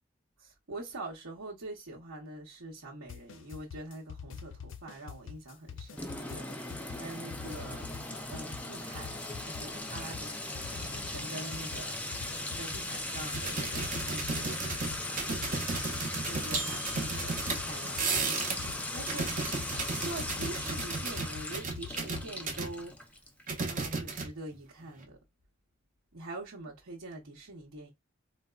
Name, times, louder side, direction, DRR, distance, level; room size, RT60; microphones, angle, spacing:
voice 1, 0.4-7.9 8.3-10.4 10.7-12.1 12.5-15.3 16.3-23.1 23.7-25.2 26.1-27.9, right 2 dB, 90° right, 0.9 m, -45 dB
sound 1, 3.1-22.3, left 7 dB, 65° left, 0.4 m, -46 dB
Sink (filling or washing) / Trickle dribble / Fill (with liquid), 6.0-23.4, left 1 dB, 5° left, 0.4 m, -38 dB
sound 2, 13.3-18.7 19.0-22.7 23.5-24.6 24.8-25.0, right 4 dB, 40° right, 0.6 m, -34 dB
4.0 x 2.1 x 2.3 m
head